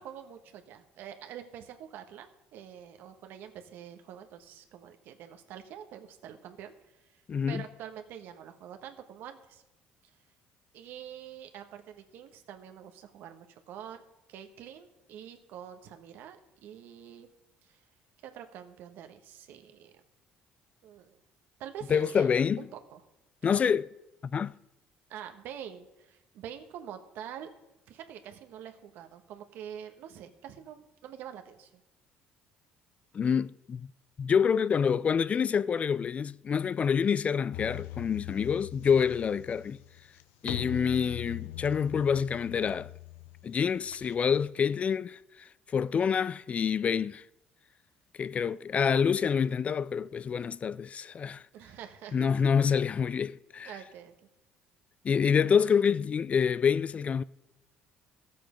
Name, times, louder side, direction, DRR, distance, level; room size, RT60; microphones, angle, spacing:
voice 1, 0.0-6.7 7.1-7.2 7.5-9.6 10.7-14.0 14.3-17.3 17.6-17.8 18.2-20.0 20.8-21.2 21.6-23.0 23.4-23.5 25.1-27.5 27.9-31.8 51.5-52.4 53.6-54.1, right 9 dB, 70° right, 1.2 m, -46 dB
voice 2, 7.3-7.6 21.9-22.6 23.4-23.9 24.3-24.6 33.1-33.9 34.2-39.8 40.4-42.9 43.4-47.2 48.2-51.4 52.1-53.7 55.0-57.2, left 7 dB, 35° left, 0.3 m, -27 dB
sound 1, 37.5-44.5, left 17 dB, 85° left, 0.5 m, -42 dB
14.0 x 7.6 x 5.1 m
supercardioid pair, 90°, 4 cm